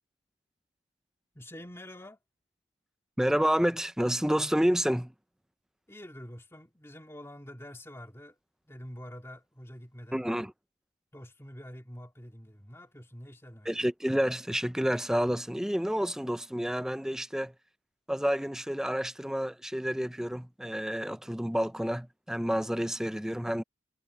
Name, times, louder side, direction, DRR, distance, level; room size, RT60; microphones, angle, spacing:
voice 1, 1.3-2.2 5.9-8.4 8.6-10.3 11.1-13.7, equal, 15° left, 2.3 m, -46 dB
voice 2, 3.2-5.1 10.1-10.5 13.7-17.5 18.1-23.6, equal, 5° right, 0.5 m, -29 dB
head